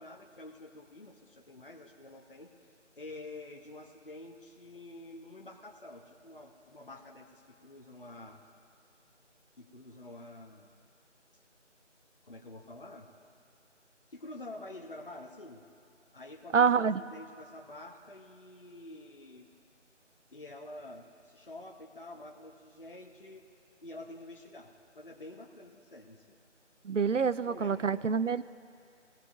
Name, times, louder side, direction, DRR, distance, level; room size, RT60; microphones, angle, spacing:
voice 1, 0.0-8.4 9.6-10.7 12.2-13.1 14.1-15.6 16.1-16.7 17.1-19.5 20.3-23.5 23.8-26.4 27.3-27.9, left 2 dB, 45° left, 1 dB, 1.0 m, -48 dB
voice 2, 16.5-17.0 26.8-28.4, right 6 dB, 80° right, 15 dB, 0.6 m, -26 dB
22.5 x 16.5 x 2.7 m, 2.3 s
figure-of-eight pair, 170°, 37 cm